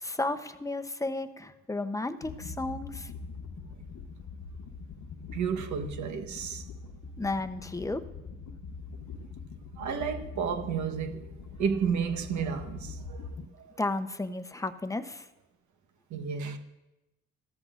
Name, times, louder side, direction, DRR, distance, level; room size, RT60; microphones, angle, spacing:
voice 1, 0.0-3.1 7.2-8.0 13.8-15.3, left 2 dB, 10° left, 0.7 m, -33 dB
sound 1, 2.2-13.5, left 4 dB, 80° left, 1.1 m, -43 dB
voice 2, 5.3-6.6 9.8-13.3 13.6-13.8 16.1-16.6, right 6 dB, 70° right, 1.2 m, -32 dB
16.5 x 13.5 x 2.5 m
cardioid pair, 90°, 30 cm